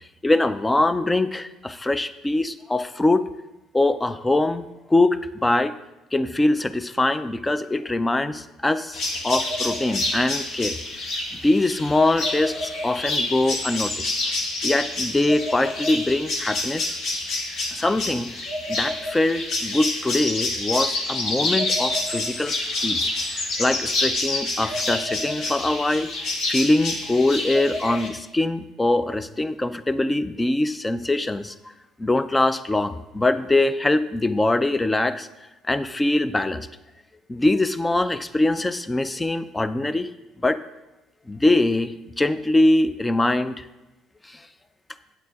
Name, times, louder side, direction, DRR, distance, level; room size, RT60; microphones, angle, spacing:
voice 1, 0.2-3.3 3.7-5.7 6.1-11.1 11.4-14.1 14.6-16.9 17.7-18.3 18.7-22.6 22.8-26.1 26.5-31.5 32.0-35.3 35.7-36.7 37.3-40.1 40.4-40.6 41.3-43.7 44.3-44.4, left 2 dB, 15° left, 14 dB, 0.5 m, -23 dB
sound 1, 8.9-28.1, left 2 dB, 65° left, 1.6 m, -27 dB
8.4 x 8.0 x 3.5 m, 1.0 s
hypercardioid pair, 60°, 0 cm